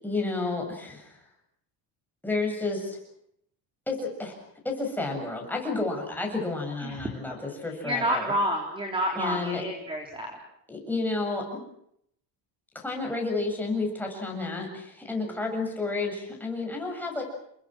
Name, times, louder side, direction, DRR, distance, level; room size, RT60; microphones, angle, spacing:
voice 1, 0.0-1.2 2.2-3.0 3.9-4.3 4.6-8.3 9.2-9.6 10.7-11.6 12.7-17.2, left 3 dB, 5° left, 1 dB, 7.6 m, -31 dB
voice 2, 7.8-10.4, equal, 10° right, 2 dB, 3.6 m, -29 dB
29.5 x 23.0 x 6.3 m, 0.72 s
cardioid pair, 160°, 46 cm